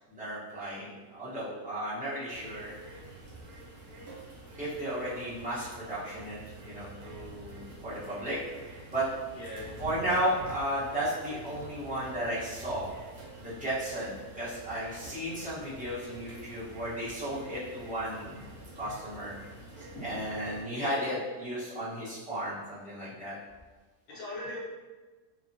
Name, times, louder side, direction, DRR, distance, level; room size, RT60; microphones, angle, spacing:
voice 1, 0.1-2.8 4.6-8.4 8.9-9.0 9.8-12.8 13.4-18.4 18.8-19.4 19.8-23.3, right 1 dB, 10° right, -11 dB, 0.5 m, -34 dB
sound 1, 2.3-20.6, right 1 dB, 65° right, 1.1 m, -47 dB
voice 2, 9.3-9.8 19.9-20.2 20.7-21.1 24.1-24.6, left 1 dB, 45° left, -7 dB, 0.9 m, -40 dB
2.8 x 2.2 x 2.6 m, 1.3 s
omnidirectional pair, 1.6 m